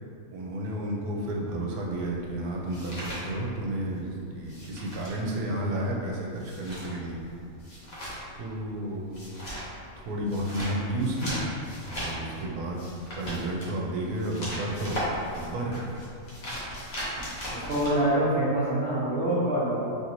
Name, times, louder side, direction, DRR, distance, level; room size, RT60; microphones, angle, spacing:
voice 1, 0.3-7.2 8.4-9.3 10.0-11.4 11.8-12.8 13.1-15.0 15.3-15.8, right 1 dB, 85° right, -1 dB, 1.1 m, -32 dB
sound 1, 1.8-4.0 4.2-17.9, equal, 40° left, 0.6 m, -38 dB
voice 2, 17.5-20.0, right 1 dB, 60° right, -10 dB, 0.7 m, -26 dB
3.1 x 2.6 x 2.8 m, 2.4 s
omnidirectional pair, 1.5 m